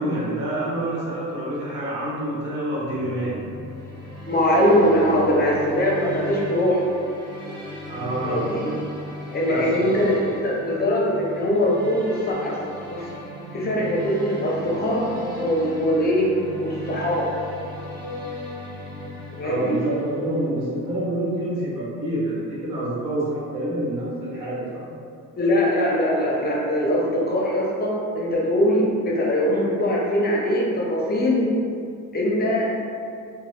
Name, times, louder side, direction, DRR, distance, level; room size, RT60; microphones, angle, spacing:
voice 1, 0.0-3.4 7.9-8.5 9.4-10.0 19.4-24.9, right 1 dB, 85° right, -7 dB, 1.1 m, -27 dB
sound 1, 2.9-20.6, equal, 15° right, 0.8 m, -36 dB
voice 2, 4.3-6.8 8.2-8.7 9.3-12.6 12.9-13.1 13.5-15.1 15.4-16.3 16.6-17.3 19.3-19.8 25.4-31.5 32.1-32.7, equal, 30° left, -3 dB, 0.7 m, -22 dB
3.0 x 2.2 x 3.1 m, 2.3 s
cardioid pair, 90°, 30 cm